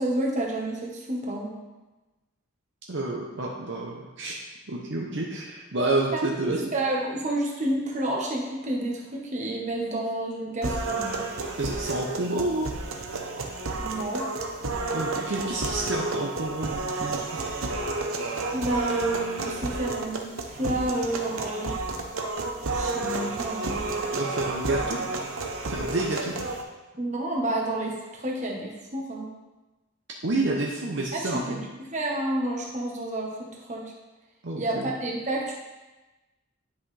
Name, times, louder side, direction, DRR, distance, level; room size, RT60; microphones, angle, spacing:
voice 1, 0.0-1.6 6.1-6.2 6.5-11.2 13.8-14.3 18.5-21.8 22.7-23.8 26.9-29.3 31.1-31.6 31.9-33.9 34.6-35.5, right 1 dB, 35° right, -1 dB, 1.3 m, -30 dB
voice 2, 2.9-6.7 11.6-12.7 14.9-17.2 24.2-25.0 25.7-26.3 30.2-31.6 34.4-34.9, right 2 dB, 60° right, -1 dB, 0.8 m, -29 dB
sound 1, 10.6-26.6, right 3 dB, 90° right, 0.9 m, -31 dB
10.5 x 5.5 x 3.3 m, 1.1 s
head